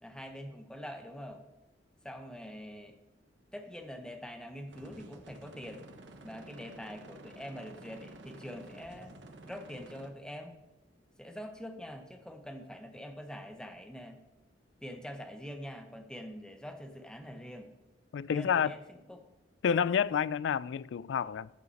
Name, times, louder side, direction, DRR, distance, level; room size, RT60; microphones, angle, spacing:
voice 1, 0.0-1.4 2.0-3.0 3.5-5.9 6.2-9.2 9.5-10.6 11.2-14.2 14.8-17.7 18.3-19.3, equal, 5° left, 0.9 m, -44 dB
sound 1, 4.7-10.1, right 2 dB, 75° right, 1.1 m, -51 dB
voice 2, 18.1-18.7 19.6-21.5, left 7 dB, 75° left, 0.3 m, -29 dB
15.0 x 5.7 x 4.1 m
head